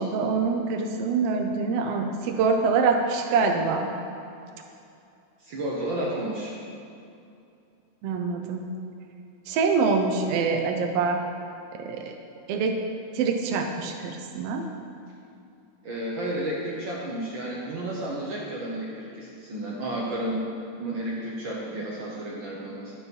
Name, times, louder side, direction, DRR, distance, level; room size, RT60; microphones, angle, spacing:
voice 1, 0.0-3.9 8.0-8.6 9.5-11.2 11.7-12.1 12.5-12.8 13.1-14.6, right 4 dB, 80° right, 3 dB, 1.3 m, -25 dB
voice 2, 5.4-6.6 15.8-20.4 20.8-22.9, right 1 dB, 65° right, -4 dB, 1.2 m, -32 dB
11.5 x 6.7 x 4.4 m, 2.6 s
omnidirectional pair, 3.4 m